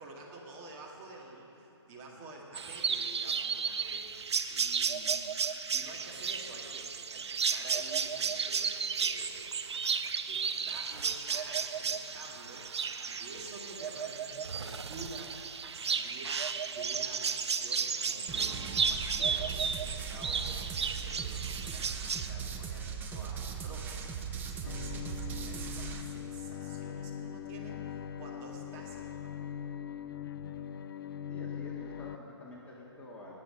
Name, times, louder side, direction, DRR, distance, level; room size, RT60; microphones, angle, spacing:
voice 1, 0.0-5.1 5.7-9.6 9.9-16.4 16.7-29.5, right 2 dB, 30° right, -2 dB, 2.1 m, -49 dB
sound 1, 2.5-22.3, right 6 dB, 70° right, 0.7 m, -33 dB
sound 2, 18.3-26.0, right 6 dB, 15° right, 0.7 m, -39 dB
Bowed string instrument, 24.7-32.2, left 9 dB, 50° left, 0.5 m, -41 dB
voice 2, 31.3-33.3, left 1 dB, 10° left, -5 dB, 1.8 m, -48 dB
19.5 x 8.2 x 5.1 m, 3.0 s
figure-of-eight pair, 135°, 15 cm